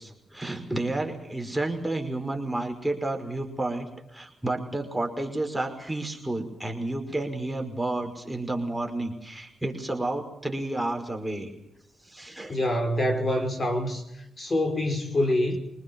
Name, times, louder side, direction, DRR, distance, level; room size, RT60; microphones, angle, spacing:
voice 1, 0.0-11.5 12.0-12.6, right 2 dB, 5° right, 5.4 m, -31 dB
voice 2, 12.5-14.1 14.4-15.6, left 1 dB, 35° left, 5.5 m, -25 dB
24.5 x 20.0 x 7.3 m
cardioid pair, 65°, 0 cm